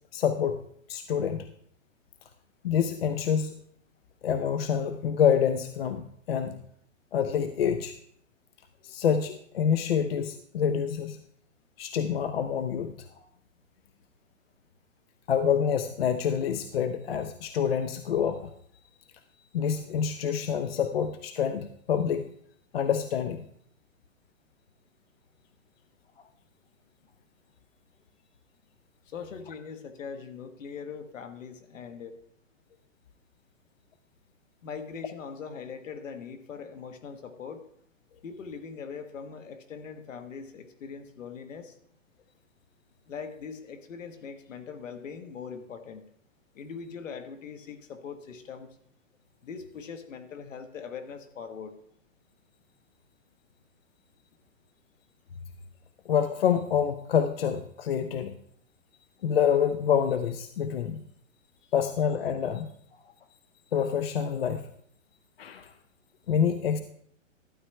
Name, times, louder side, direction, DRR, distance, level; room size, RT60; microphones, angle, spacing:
voice 1, 0.1-0.6 0.9-1.5 2.6-3.6 4.2-6.6 7.1-8.0 8.8-11.2 11.8-12.9 15.3-18.5 19.5-22.3 22.7-23.5 56.1-58.3 59.2-61.0 61.7-62.7 63.7-64.7 65.4-65.7 66.3-66.8, left 8 dB, 50° left, 10 dB, 0.5 m, -27 dB
voice 2, 29.1-32.2 34.6-37.6 38.2-41.8 43.1-46.1 46.5-48.7 49.4-51.8 61.6-61.7, left 6 dB, 70° left, 8 dB, 1.4 m, -41 dB
12.5 x 8.4 x 3.3 m, 0.65 s
hypercardioid pair, 170°, 40 cm